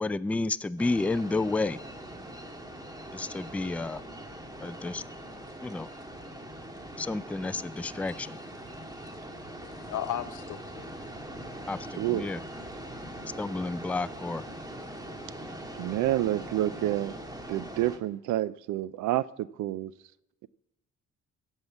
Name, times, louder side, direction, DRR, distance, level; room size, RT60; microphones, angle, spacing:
voice 1, 0.0-1.8 3.1-4.0 4.6-5.0 5.6-5.9 7.0-8.4 11.7-12.4 13.4-14.4, left 3 dB, 5° left, 14 dB, 0.3 m, -31 dB
sound 1, 0.8-18.0, right 1 dB, 15° right, 1.6 m, -42 dB
voice 2, 9.6-11.1, left 11 dB, 80° left, 9 dB, 1.0 m, -36 dB
voice 3, 12.0-12.3 15.8-17.1 17.5-19.9, right 14 dB, 80° right, 19 dB, 0.5 m, -29 dB
15.0 x 5.6 x 7.3 m, 0.88 s
cardioid pair, 90°, 30 cm